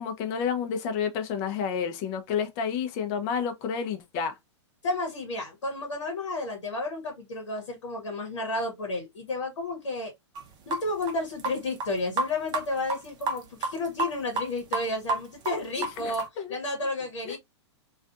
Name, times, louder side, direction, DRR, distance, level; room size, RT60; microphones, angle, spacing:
voice 1, 0.0-4.3 15.8-16.5 17.2-17.4, left 7 dB, 40° left, 0.6 m, -30 dB
voice 2, 4.8-10.1 10.7-16.2 16.5-17.4, left 2 dB, 75° left, 1.0 m, -32 dB
sound 1, 10.3-10.4 10.7-11.9 12.2-12.6 12.9-14.5 14.7-16.3, right 3 dB, 25° right, 0.7 m, -29 dB
2.5 x 2.4 x 2.3 m
hypercardioid pair, 115°, 15 cm